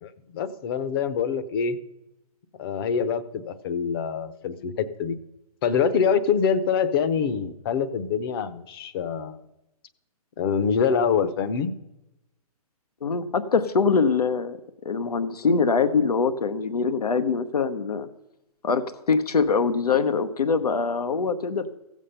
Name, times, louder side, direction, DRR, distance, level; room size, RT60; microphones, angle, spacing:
voice 1, 0.0-1.8 2.6-5.2 5.6-9.4 10.4-11.7, left 6 dB, 40° left, 13 dB, 0.8 m, -25 dB
voice 2, 13.0-14.6 14.8-18.1 18.6-21.7, left 5 dB, 85° left, 11 dB, 0.9 m, -23 dB
15.0 x 7.2 x 5.6 m, 0.91 s
hypercardioid pair, 140°, 19 cm